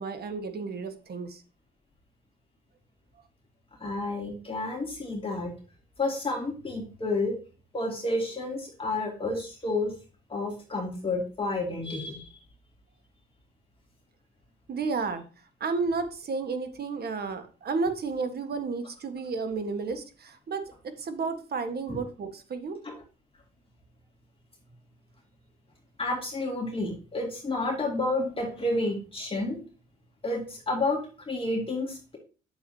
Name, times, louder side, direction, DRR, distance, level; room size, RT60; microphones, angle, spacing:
voice 1, 0.0-1.4 14.7-15.2 15.6-22.8, right 4 dB, 55° right, 8 dB, 1.4 m, -32 dB
voice 2, 3.8-5.5 6.0-7.4 7.7-9.9 10.3-12.3 21.9-22.0 22.8-22.9 26.0-29.6 30.2-32.2, left 2 dB, 25° left, 0 dB, 2.4 m, -30 dB
9.3 x 7.2 x 2.8 m, 0.35 s
cardioid pair, 90°, 20 cm